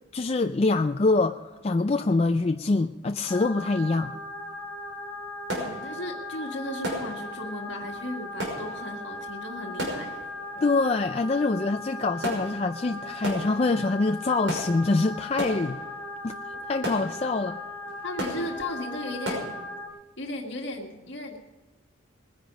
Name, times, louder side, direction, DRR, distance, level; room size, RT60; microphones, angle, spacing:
voice 1, 0.1-4.1 10.6-15.8 16.2-17.6, left 3 dB, 30° left, 0.4 m, -25 dB
sound 1, 3.3-19.9, left 1 dB, 15° left, 3.3 m, -38 dB
sound 2, 4.5-4.6 5.0-19.6, equal, 70° right, 5.8 m, -37 dB
voice 2, 5.5-10.3 18.0-19.5 20.2-21.4, left 1 dB, 60° left, 1.8 m, -36 dB
21.0 x 10.5 x 5.2 m
head